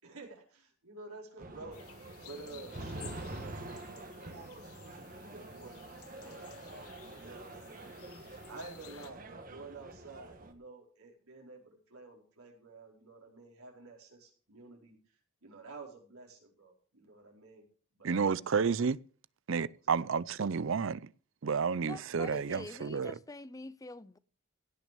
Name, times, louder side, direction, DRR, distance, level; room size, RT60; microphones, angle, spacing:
voice 1, 0.0-4.1 4.7-5.0 5.3-7.8 8.5-17.6 17.9-18.4 19.8-20.0, right 3 dB, 85° right, 4.7 m, -51 dB
sound 1, 1.4-10.5, right 2 dB, 40° right, 1.5 m, -46 dB
sound 2, 1.7-9.1, left 11 dB, 90° left, 1.2 m, -56 dB
voice 2, 18.0-19.0 19.5-21.1 21.4-23.2, right 5 dB, 65° right, 0.5 m, -31 dB
voice 3, 21.9-24.2, left 2 dB, 15° left, 0.5 m, -45 dB
17.0 x 6.2 x 6.8 m
head